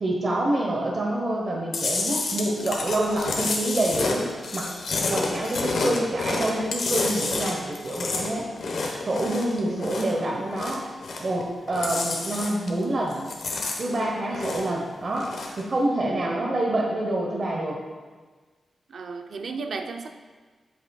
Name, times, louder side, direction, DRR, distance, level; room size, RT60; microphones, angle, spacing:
voice 1, 0.0-4.7 5.1-8.5 9.0-10.8 11.2-13.2 13.8-15.3 15.6-17.8, right 1 dB, 40° right, -2 dB, 1.1 m, -27 dB
Chewing mastication, 1.7-10.2 10.5-11.4 11.7-12.8 13.1-14.8 15.1-15.6, left 3 dB, 70° left, 1.2 m, -29 dB
voice 2, 9.6-10.3 14.3-14.9 16.0-16.5 18.9-20.1, right 4 dB, 65° right, 6 dB, 0.6 m, -36 dB
11.0 x 8.2 x 2.4 m, 1.4 s
wide cardioid pair, 125°, 0 cm